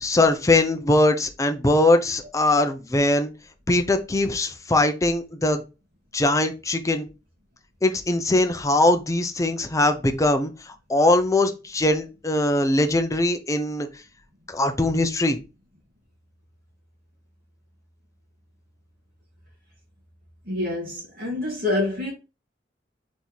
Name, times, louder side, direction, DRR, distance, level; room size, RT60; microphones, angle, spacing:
voice 1, 0.0-3.3 3.7-5.6 6.1-7.1 7.8-10.5 10.9-13.9 14.5-15.4, left 2 dB, 20° left, 0.5 m, -21 dB
voice 2, 20.5-22.1, left 2 dB, 55° right, 2.0 m, -26 dB
4.1 x 3.1 x 3.9 m
head